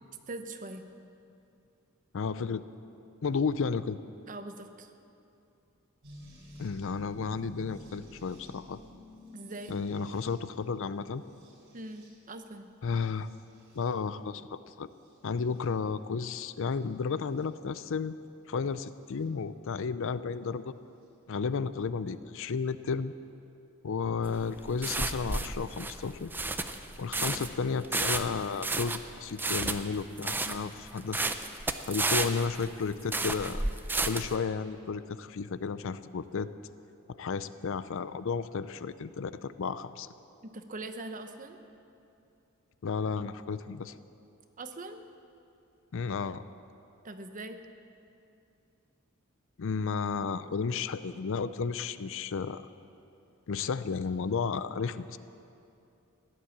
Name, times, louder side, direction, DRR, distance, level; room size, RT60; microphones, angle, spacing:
voice 1, 0.3-0.9 4.3-4.9 9.3-9.8 11.7-12.7 27.1-27.4 40.4-41.6 44.6-45.0 47.0-47.6, right 2 dB, 40° right, 7 dB, 0.9 m, -42 dB
voice 2, 2.1-2.6 3.2-4.0 6.6-8.8 9.7-11.2 12.8-13.3 13.8-14.9 15.2-18.2 18.5-20.7 21.3-23.1 23.8-26.3 27.0-31.3 31.9-33.6 34.0-36.5 37.1-40.1 42.8-43.9 45.9-46.4 49.6-52.6 53.5-55.2, left 5 dB, 65° left, 14 dB, 0.5 m, -33 dB
sound 1, 6.0-14.2 14.9-15.7 16.8-17.5 19.2-19.3 21.0-21.1, equal, 60° right, 3.6 m, -53 dB
sound 2, 24.2-34.4, right 2 dB, 10° right, 0.6 m, -32 dB
16.0 x 11.5 x 7.3 m, 2.7 s
head